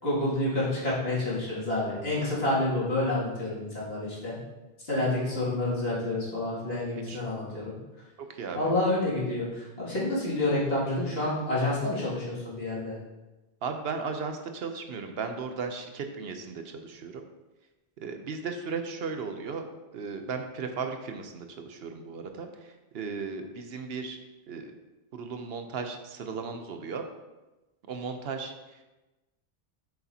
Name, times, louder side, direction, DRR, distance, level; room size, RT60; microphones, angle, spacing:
voice 1, 0.0-4.4 4.8-7.8 8.5-13.0, left 2 dB, 75° left, -8 dB, 2.7 m, -28 dB
voice 2, 8.3-8.7 13.6-17.2 18.0-19.7 19.9-24.2 24.5-24.7 25.1-27.0 27.9-28.8, right 5 dB, 75° right, 6 dB, 1.0 m, -36 dB
8.1 x 6.6 x 2.8 m, 1.1 s
omnidirectional pair, 1.0 m